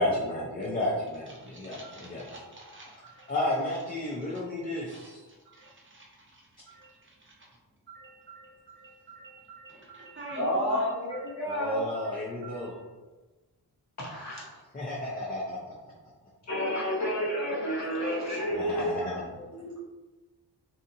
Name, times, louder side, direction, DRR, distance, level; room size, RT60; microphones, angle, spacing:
voice 1, 0.0-2.2 3.3-5.2 11.4-12.7 14.7-15.7 18.5-19.2, left 1 dB, 25° left, -5 dB, 0.5 m, -32 dB
voice 2, 1.3-3.3 3.7-3.8 4.2-7.5 7.9-12.7, right 3 dB, 30° right, -4 dB, 0.7 m, -48 dB
voice 3, 10.4-11.9 14.0-14.6 16.5-19.8, equal, 45° left, -6 dB, 1.1 m, -30 dB
2.7 x 2.4 x 2.6 m, 1.2 s
wide cardioid pair, 110°, 39 cm